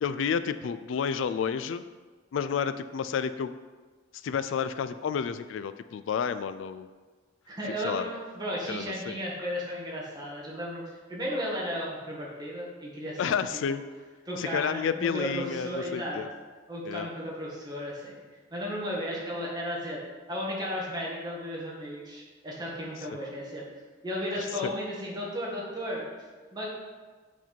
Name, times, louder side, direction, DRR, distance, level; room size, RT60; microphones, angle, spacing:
voice 1, 0.0-1.8 2.3-3.5 4.2-6.9 7.8-8.1 8.7-9.2 13.2-13.8 14.3-16.3 16.9-17.1, left 7 dB, 80° left, 13 dB, 0.3 m, -30 dB
voice 2, 7.5-13.4 13.7-13.8 14.3-16.2 16.7-18.1 18.5-20.0 20.3-23.6 24.0-26.0 26.5-26.7, equal, 20° right, -5 dB, 1.8 m, -34 dB
8.1 x 4.5 x 4.4 m, 1.4 s
head